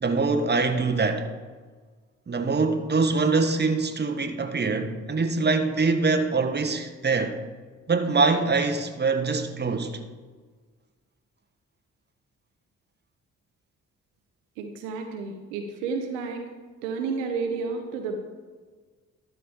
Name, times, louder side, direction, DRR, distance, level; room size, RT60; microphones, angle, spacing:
voice 1, 0.0-1.3 2.3-7.4 7.9-10.0, right 4 dB, 25° right, 1.1 m, -24 dB
voice 2, 14.6-16.5 16.8-18.2, right 4 dB, 85° right, 0.8 m, -31 dB
12.5 x 5.2 x 4.2 m
hypercardioid pair, 40°, 38 cm